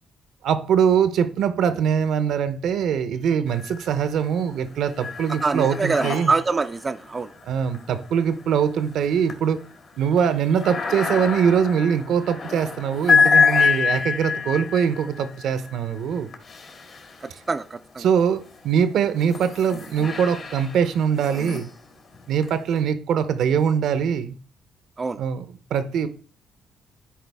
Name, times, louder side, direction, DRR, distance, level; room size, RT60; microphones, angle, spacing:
voice 1, 0.4-6.3 7.5-9.6 10.0-16.3 18.0-21.7 22.3-24.4 25.2-25.4 25.7-26.1, right 7 dB, 75° right, 0.7 m, -22 dB
sound 1, 3.5-4.1 4.5-17.7 18.3-22.8, left 5 dB, 55° left, 1.8 m, -27 dB
voice 2, 5.4-7.3 17.2-18.1 25.0-25.2, right 4 dB, 30° right, 0.4 m, -25 dB
10.5 x 4.6 x 3.5 m
cardioid pair, 90°, 0 cm